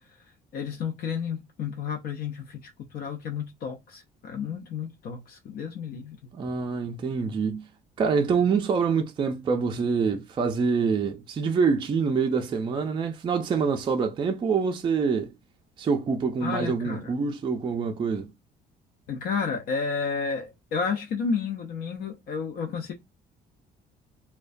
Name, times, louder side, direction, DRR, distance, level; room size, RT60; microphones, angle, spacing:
voice 1, 0.5-6.3 16.4-17.1 19.1-22.9, left 5 dB, 60° left, 0.5 m, -31 dB
voice 2, 6.3-7.6 8.0-15.3 15.8-18.3, right 5 dB, 30° right, 0.4 m, -26 dB
2.3 x 2.2 x 2.5 m
cardioid pair, 110°, 17 cm